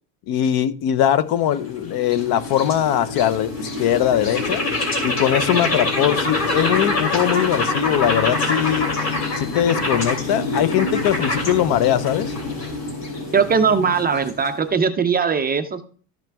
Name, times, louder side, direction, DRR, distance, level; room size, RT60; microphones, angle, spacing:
voice 1, 0.3-4.6 5.0-8.9 9.4-12.3, left 10 dB, 55° left, 15 dB, 0.7 m, -21 dB
sound 1, 1.3-14.7, left 2 dB, 35° left, 3.1 m, -25 dB
voice 2, 13.3-15.9, right 6 dB, 20° right, 8 dB, 0.6 m, -20 dB
13.0 x 6.0 x 3.4 m, 0.42 s
cardioid pair, 135°, 46 cm